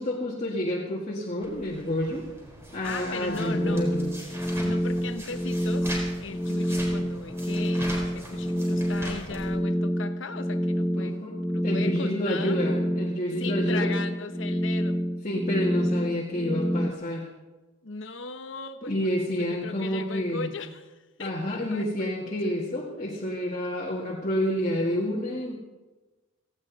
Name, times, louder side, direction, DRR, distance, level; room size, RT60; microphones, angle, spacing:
voice 1, 0.0-2.3 2.7-4.1 10.9-11.3 11.6-13.9 15.2-17.3 18.8-20.5 21.2-25.6, left 1 dB, 35° left, -4 dB, 2.0 m, -29 dB
sound 1, 1.4-9.5, equal, 15° right, 4.2 m, -41 dB
voice 2, 2.8-3.9 4.6-5.9 6.2-11.2 11.5-12.6 13.4-15.0 17.8-22.5, left 4 dB, 65° left, 9 dB, 1.1 m, -38 dB
sound 2, 3.3-16.9, equal, 5° left, 0.4 m, -28 dB
17.5 x 16.5 x 4.1 m, 1.2 s
head